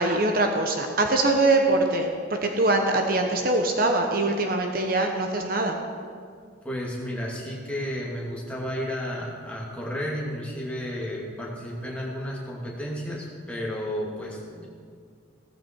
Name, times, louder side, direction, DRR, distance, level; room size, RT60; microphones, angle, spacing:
voice 1, 0.0-5.8, right 2 dB, 45° right, 3 dB, 1.1 m, -23 dB
voice 2, 6.6-14.7, equal, 5° left, -4 dB, 2.5 m, -32 dB
16.5 x 14.5 x 4.6 m, 2.1 s
head